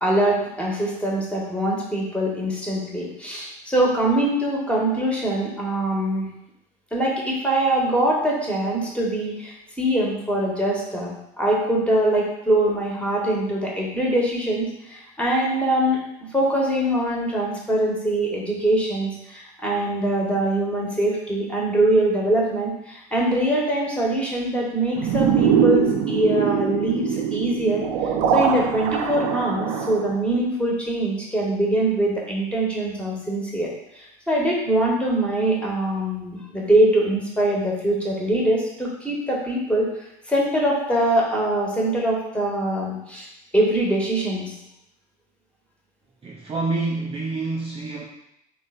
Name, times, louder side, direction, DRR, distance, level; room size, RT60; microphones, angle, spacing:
voice 1, 0.0-6.3 6.9-11.1 11.4-16.0 16.3-27.8 28.3-33.7 33.9-39.9 40.3-43.3 43.5-44.5, right 1 dB, 5° left, -4 dB, 1.6 m, -23 dB
sound 1, 25.0-30.1, right 7 dB, 60° right, 0.7 m, -22 dB
voice 2, 46.2-48.1, right 3 dB, 30° right, -3 dB, 0.7 m, -27 dB
3.8 x 3.2 x 4.0 m, 0.83 s
figure-of-eight pair, 60°, 21 cm